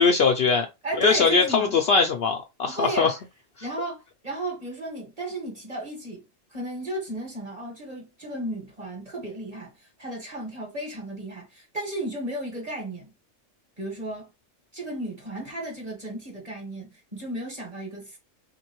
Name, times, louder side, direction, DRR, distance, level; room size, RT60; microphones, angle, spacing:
voice 1, 0.0-0.7 1.0-3.1 3.6-3.7, left 5 dB, 60° left, 0.7 m, -21 dB
voice 2, 0.8-1.7 2.7-3.1 3.6-6.2 6.5-13.1 13.8-14.3 14.7-18.2, right 2 dB, 30° right, 1.7 m, -34 dB
3.6 x 3.0 x 3.0 m
omnidirectional pair, 1.3 m